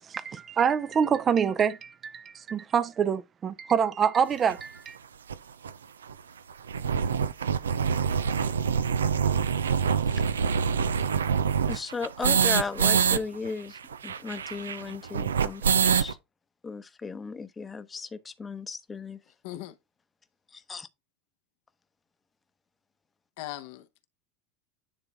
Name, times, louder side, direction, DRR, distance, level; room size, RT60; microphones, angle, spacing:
voice 1, 0.0-5.0, right 7 dB, 30° right, 0.6 m, -26 dB
sound 1, 4.5-4.6 5.3-5.4 5.6-5.7 6.0-6.1 6.5-13.2 13.5-13.6 13.8-16.1, right 7 dB, 85° right, 0.5 m, -25 dB
voice 2, 11.7-13.8 14.0-16.2 16.6-19.2 20.7-20.9, left 4 dB, 20° left, 0.8 m, -36 dB
voice 3, 19.4-19.7 23.4-24.1, left 15 dB, 60° left, 0.8 m, -39 dB
9.9 x 3.9 x 3.5 m
hypercardioid pair, 80°, 0 cm